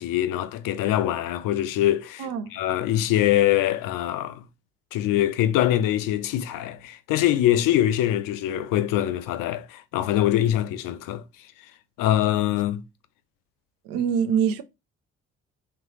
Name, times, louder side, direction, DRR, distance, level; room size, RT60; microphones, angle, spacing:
voice 1, 0.0-4.4 4.9-11.2 12.0-12.8, left 12 dB, 65° left, 0.5 m, -23 dB
voice 2, 2.2-2.5 13.9-14.6, right 8 dB, 70° right, 0.6 m, -24 dB
3.0 x 2.5 x 3.0 m
hypercardioid pair, 40°, 35 cm